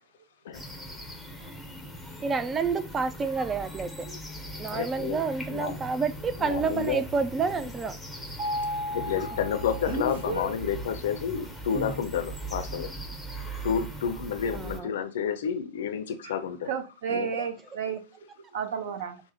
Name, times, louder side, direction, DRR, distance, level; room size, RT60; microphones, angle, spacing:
sound 1, 0.5-14.8, right 1 dB, ahead, 0.8 m, -40 dB
voice 1, 2.2-4.1 4.6-8.0 14.5-14.9 17.3-17.4, right 5 dB, 20° right, 0.4 m, -29 dB
Speech, 4.5-4.6 9.8-10.5 11.7-12.0, right 1 dB, 75° right, 1.2 m, -32 dB
voice 2, 4.7-5.2 5.5-5.8 6.4-7.0 8.9-12.9 13.3-16.7 17.1-17.3, left 7 dB, 60° left, 0.5 m, -30 dB
Mallet percussion, 8.4-10.4, left 1 dB, 40° right, 1.2 m, -34 dB
voice 3, 16.7-19.2, right 7 dB, 55° right, 0.8 m, -33 dB
5.8 x 2.1 x 2.8 m
figure-of-eight pair, 90°, 0 cm